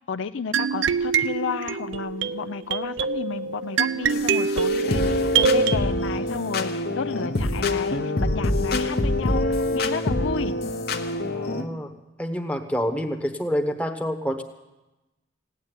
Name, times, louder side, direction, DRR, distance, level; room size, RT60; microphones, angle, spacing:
voice 1, 0.0-10.5, left 5 dB, 70° left, 10 dB, 0.5 m, -32 dB
sound 1, 0.5-5.8, right 5 dB, 70° right, 0.5 m, -24 dB
sound 2, 4.1-11.7, left 2 dB, 50° left, 1.0 m, -25 dB
voice 2, 11.3-11.9 12.2-14.4, equal, 5° left, 6 dB, 1.0 m, -27 dB
16.5 x 9.6 x 9.0 m, 1.0 s
head